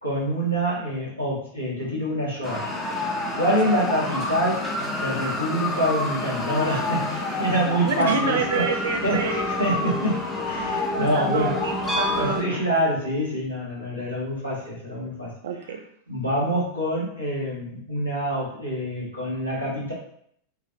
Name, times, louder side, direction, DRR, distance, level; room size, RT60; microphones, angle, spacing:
voice 1, 0.0-2.7 3.3-4.7 5.0-8.7 9.0-11.6 12.1-15.3 16.1-19.9, equal, 90° left, -8 dB, 1.3 m, -26 dB
sound 1, 2.4-12.4, left 2 dB, 15° left, 0.7 m, -28 dB
voice 2, 7.8-9.5 10.9-12.8 15.4-15.8, right 5 dB, 60° right, 5 dB, 0.4 m, -28 dB
2.9 x 2.4 x 2.7 m, 0.66 s
figure-of-eight pair, 90°, 0 cm